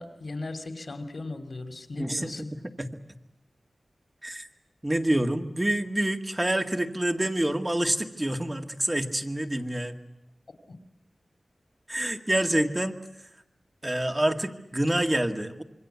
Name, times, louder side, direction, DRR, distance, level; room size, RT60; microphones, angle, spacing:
voice 1, 0.0-2.5 10.7-10.8, left 2 dB, 65° left, 7 dB, 2.8 m, -37 dB
voice 2, 2.0-2.9 4.2-4.5 4.8-10.0 11.9-12.9 13.8-15.6, right 1 dB, 20° right, 5 dB, 1.9 m, -27 dB
26.5 x 23.5 x 8.3 m, 0.90 s
wide cardioid pair, 65°, 0 cm